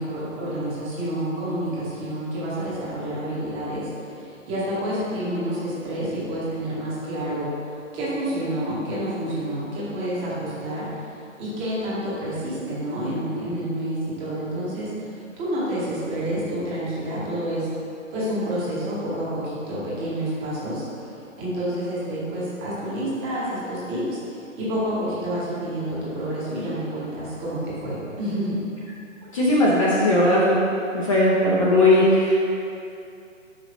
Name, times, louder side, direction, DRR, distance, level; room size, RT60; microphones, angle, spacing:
voice 1, 0.0-7.6 7.9-10.9 11.4-17.7 18.1-20.8 21.1-28.6, right 1 dB, 15° right, -8 dB, 1.0 m, -29 dB
voice 2, 29.3-30.6 30.9-32.4, left 1 dB, 25° left, -7 dB, 0.6 m, -18 dB
5.2 x 5.2 x 4.0 m, 2.6 s
figure-of-eight pair, 140°, 40 cm